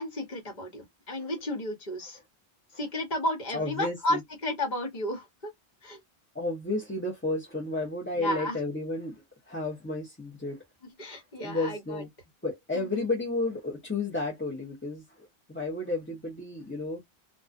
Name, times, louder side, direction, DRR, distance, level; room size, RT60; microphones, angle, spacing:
voice 1, 0.0-2.2 2.8-5.5 5.8-6.0 8.2-8.6 11.0-12.0 12.7-13.1, left 1 dB, 45° left, 1.1 m, -33 dB
voice 2, 3.5-4.2 6.3-10.6 11.4-12.1 12.4-17.0, left 2 dB, 15° left, 0.6 m, -32 dB
2.3 x 2.2 x 2.5 m
omnidirectional pair, 1.0 m